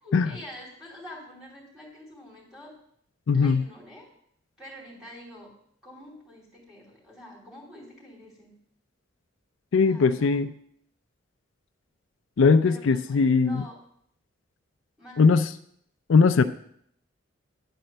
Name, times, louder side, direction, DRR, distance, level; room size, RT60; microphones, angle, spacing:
voice 1, 0.0-2.7 3.3-4.1 4.6-5.5 5.8-8.5 9.7-10.4 12.6-13.7 15.0-15.3, left 1 dB, 5° right, -5 dB, 3.0 m, -46 dB
voice 2, 3.3-3.7 9.7-10.5 12.4-13.6 15.2-15.5 16.1-16.4, left 4 dB, 70° left, 10 dB, 0.4 m, -20 dB
10.5 x 4.2 x 7.7 m, 0.68 s
head